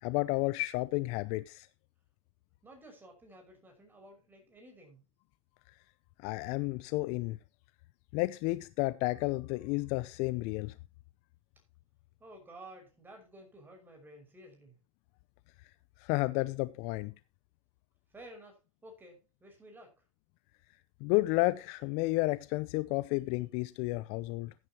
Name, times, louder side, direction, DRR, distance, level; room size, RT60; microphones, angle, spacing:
voice 1, 0.0-1.7 6.2-7.4 8.1-10.7 16.0-17.1 21.0-24.5, left 21 dB, 40° left, 0.6 m, -31 dB
voice 2, 2.6-5.0 12.2-14.8 18.1-19.9, right 1 dB, 10° right, 5.7 m, -53 dB
15.0 x 9.9 x 2.9 m
hypercardioid pair, 130°, 17 cm